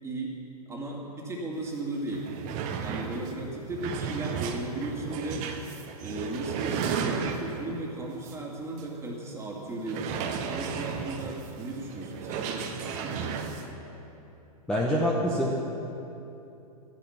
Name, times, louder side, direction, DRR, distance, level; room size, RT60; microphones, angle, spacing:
voice 1, 0.0-0.4 0.7-2.3 2.8-5.5 6.0-13.4, right 2 dB, 15° right, -1 dB, 2.3 m, -36 dB
sound 1, 1.7-1.8 2.0-7.7 8.2-8.4 8.8-8.9 9.8-13.7, right 6 dB, 40° right, 1.2 m, -34 dB
voice 2, 14.7-15.6, equal, 5° left, -3 dB, 1.2 m, -25 dB
13.5 x 10.5 x 5.9 m, 3.0 s
hypercardioid pair, 115°, 20 cm